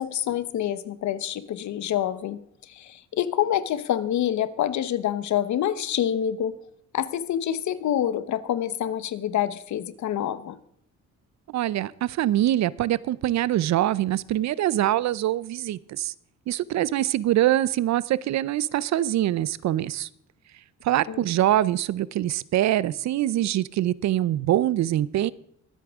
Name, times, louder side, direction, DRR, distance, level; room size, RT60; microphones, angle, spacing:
voice 1, 0.0-6.6 6.9-10.6 21.1-21.2, left 10 dB, 70° left, 15 dB, 0.9 m, -27 dB
voice 2, 11.5-16.1 16.5-20.1 20.8-25.3, right 13 dB, 65° right, 20 dB, 0.5 m, -24 dB
23.0 x 8.6 x 3.6 m, 0.70 s
cardioid pair, 90°, 30 cm